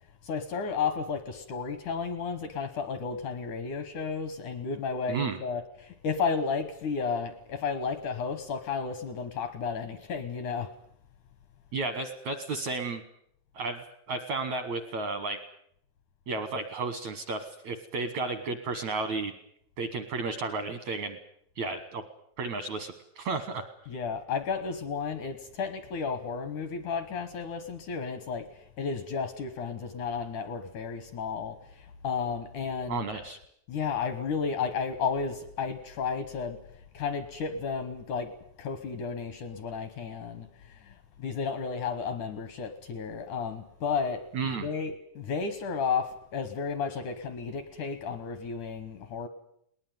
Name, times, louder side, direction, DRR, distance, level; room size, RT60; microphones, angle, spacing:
voice 1, 0.2-10.7 23.9-33.1 33.7-36.6 36.9-38.3 38.6-44.2 44.6-49.3, left 5 dB, 80° left, 11 dB, 1.8 m, -33 dB
voice 2, 5.1-5.4 11.7-13.0 13.5-15.4 16.3-19.3 19.8-21.2 21.6-22.0 22.4-23.7 32.9-33.4 44.3-44.7, right 3 dB, 75° right, 11 dB, 1.6 m, -33 dB
21.0 x 19.5 x 9.2 m, 0.70 s
omnidirectional pair, 5.3 m